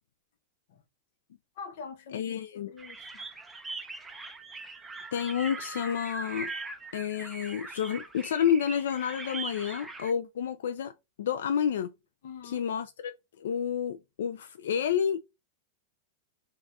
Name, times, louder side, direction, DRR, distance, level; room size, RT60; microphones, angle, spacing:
voice 1, 1.6-3.3 12.2-12.7, left 6 dB, 60° left, 0.7 m, -45 dB
voice 2, 2.1-2.7 5.1-6.5 6.9-10.9 11.2-11.9 12.4-15.3, left 8 dB, 85° left, 0.3 m, -30 dB
sound 1, 2.8-10.1, right 3 dB, 5° right, 0.3 m, -41 dB
3.5 x 2.3 x 3.9 m
supercardioid pair, 165°, 0 cm